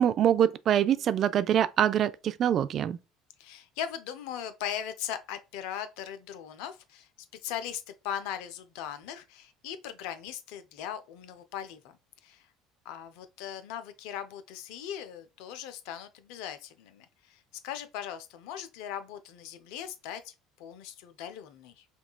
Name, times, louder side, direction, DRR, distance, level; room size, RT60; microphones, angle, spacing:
voice 1, 0.0-3.0, right 10 dB, 50° right, 0.3 m, -24 dB
voice 2, 3.4-7.1 7.4-12.0 12.2-12.5 12.8-21.9, left 9 dB, 65° left, 0.5 m, -39 dB
5.2 x 2.3 x 2.3 m
hypercardioid pair, 65°, 0 cm